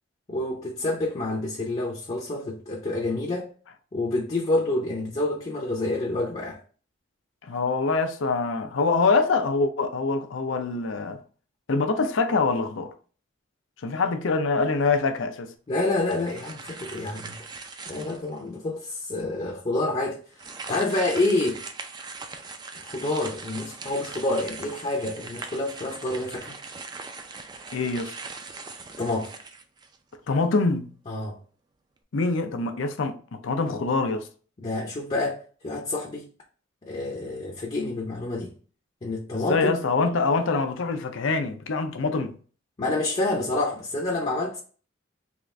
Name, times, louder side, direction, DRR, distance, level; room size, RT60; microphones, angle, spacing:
voice 1, 0.3-3.5 3.9-6.6 15.7-17.4 17.9-20.2 20.7-21.6 22.7-26.6 29.0-29.3 31.1-31.4 34.6-36.3 36.8-38.5 39.0-39.8 42.8-44.6, left 2 dB, 30° left, 0.6 m, -28 dB
voice 2, 7.4-11.2 11.7-12.9 13.8-15.5 27.7-28.1 30.3-30.9 32.1-33.2 33.4-34.3 39.3-42.3, left 4 dB, 90° left, 0.5 m, -24 dB
sound 1, 15.9-18.4 19.0-19.1 20.3-30.1, right 4 dB, 20° right, 0.3 m, -40 dB
3.6 x 2.5 x 3.1 m
head